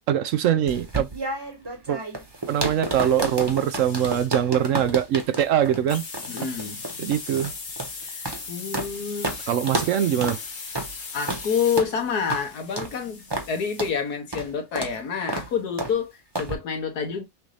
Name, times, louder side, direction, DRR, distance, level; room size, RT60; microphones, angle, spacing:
voice 1, 0.1-1.1 1.9-2.0 2.5-6.0 7.0-7.5 9.5-10.4, right 10 dB, 65° right, 0.8 m, -22 dB
sound 1, 0.7-8.9 9.2-9.4 9.7-9.9 10.2-10.4 10.7-10.9 11.3-11.4 11.8-11.9 12.3-12.4 12.8-12.9 13.3-13.5 13.8-13.9 14.3-14.5 14.8-14.9 15.3-15.5 15.8-15.9 16.3-16.5, right 2 dB, 20° right, 1.0 m, -30 dB
sound 2, 2.9-4.3 5.9-13.9, left 4 dB, 50° left, 1.4 m, -39 dB
voice 2, 6.3-7.1 8.0-9.5 11.1-17.2, left 6 dB, 85° left, 1.7 m, -28 dB
6.2 x 2.6 x 3.2 m
omnidirectional pair, 1.6 m